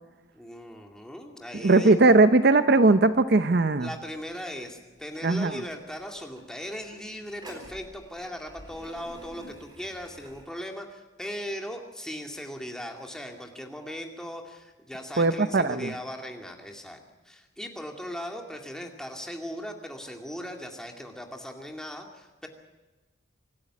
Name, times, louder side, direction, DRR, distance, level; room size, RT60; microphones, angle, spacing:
voice 1, 0.3-2.0 3.8-22.5, equal, 5° left, 2 dB, 2.2 m, -38 dB
voice 2, 1.6-3.9 5.2-5.6 15.2-15.9, right 3 dB, 50° right, 12 dB, 0.6 m, -19 dB
sound 1, 3.8-10.4, right 1 dB, 20° right, 4.6 m, -50 dB
25.5 x 12.5 x 9.9 m, 1.2 s
head